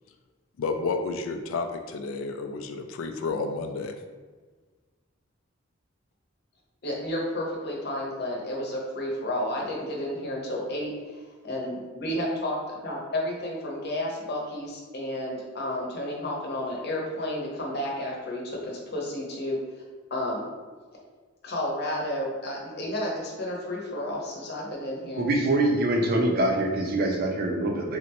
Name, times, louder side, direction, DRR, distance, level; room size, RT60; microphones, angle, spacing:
voice 1, 0.6-4.0, left 4 dB, 90° left, 6 dB, 0.3 m, -31 dB
voice 2, 6.8-11.2 11.5-11.7 12.0-12.6 12.8-19.6 20.1-20.4 21.4-25.2, left 1 dB, 55° left, -2 dB, 0.8 m, -31 dB
voice 3, 25.2-28.0, right 1 dB, 50° right, 2 dB, 0.5 m, -24 dB
3.9 x 2.1 x 2.9 m, 1.4 s
head